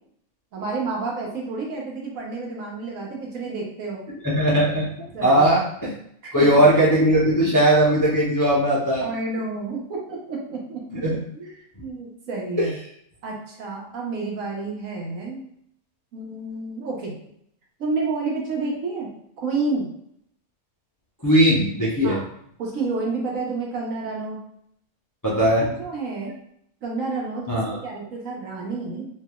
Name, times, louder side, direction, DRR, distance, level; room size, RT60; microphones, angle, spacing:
voice 1, 0.5-4.0 5.1-5.6 6.2-6.6 9.0-10.8 11.3-12.7 13.2-15.4 16.1-17.1 17.8-19.1 19.4-19.9 22.0-22.3 22.6-24.4 25.6-26.3 26.8-29.1, right 3 dB, 75° right, -2 dB, 1.2 m, -30 dB
voice 2, 4.2-4.9 5.2-5.9 6.3-9.0 10.9-11.2 21.2-22.2 25.2-25.7 27.5-27.8, right 1 dB, 30° left, -7 dB, 0.4 m, -18 dB
3.2 x 2.7 x 2.3 m, 0.70 s
omnidirectional pair, 1.4 m